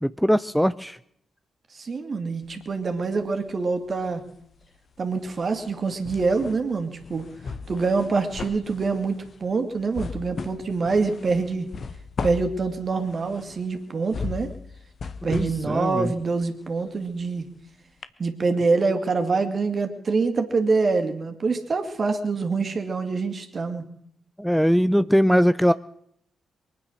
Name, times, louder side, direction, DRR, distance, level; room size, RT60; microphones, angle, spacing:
voice 1, 0.0-1.0 15.3-16.1 24.4-25.7, equal, ahead, 14 dB, 0.6 m, -21 dB
voice 2, 1.7-4.2 5.0-7.3 7.7-11.7 12.2-14.5 15.2-17.5 18.2-23.8, right 4 dB, 50° right, 6 dB, 2.3 m, -25 dB
sound 1, 2.4-3.6 3.9-17.6 18.0-18.1, left 5 dB, 55° left, 1.1 m, -38 dB
23.0 x 9.4 x 6.3 m, 0.72 s
hypercardioid pair, 40°, 0 cm